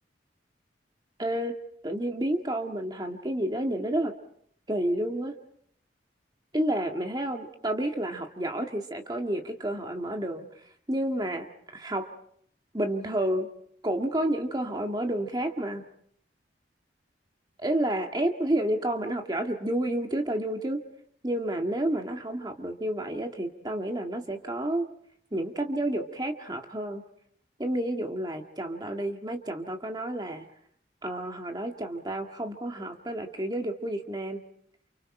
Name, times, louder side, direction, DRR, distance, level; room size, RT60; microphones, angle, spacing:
voice 1, 1.2-1.5 1.8-4.1 4.7-5.4 6.5-10.5 10.9-11.5 11.7-12.1 12.7-13.5 13.8-15.8 17.6-20.8 21.2-24.9 25.3-27.0 27.6-30.4 31.0-34.4, right 1 dB, 25° right, 3 dB, 1.9 m, -30 dB
29.5 x 29.5 x 4.4 m, 0.67 s
head